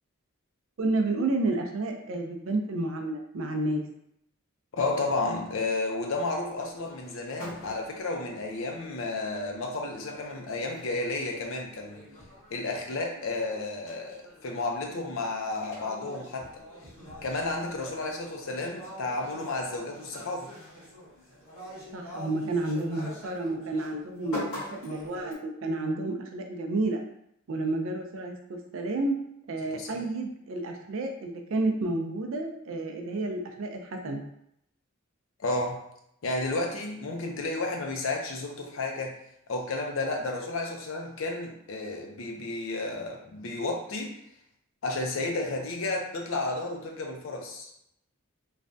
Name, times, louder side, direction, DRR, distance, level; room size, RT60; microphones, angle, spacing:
voice 1, 0.8-3.8 21.9-27.0 27.5-29.1 29.5-34.2, right 2 dB, 65° right, 3 dB, 0.4 m, -30 dB
voice 2, 4.7-12.0 12.5-16.6 17.2-20.5 29.6-30.0 35.4-35.8 36.2-39.2 39.5-44.2 44.8-47.7, left 2 dB, 65° left, 1 dB, 0.5 m, -32 dB
sound 1, 6.4-23.9 24.2-25.3, left 1 dB, 85° left, 1.4 m, -45 dB
3.2 x 2.2 x 2.6 m, 0.75 s
head